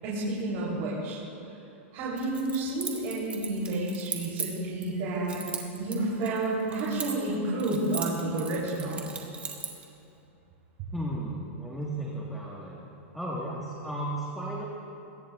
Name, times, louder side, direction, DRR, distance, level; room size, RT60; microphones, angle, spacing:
voice 1, 0.0-1.2 1.9-5.4 5.8-9.1, right 2 dB, 45° right, -6 dB, 3.7 m, -30 dB
Keys jangling, 2.2-4.9 5.3-7.3 7.6-9.8, right 5 dB, 15° right, 1.7 m, -38 dB
voice 2, 10.9-12.8 13.1-14.6, right 1 dB, ahead, -5 dB, 1.7 m, -34 dB
22.0 x 17.5 x 2.5 m, 2.9 s
hypercardioid pair, 135°, 7 cm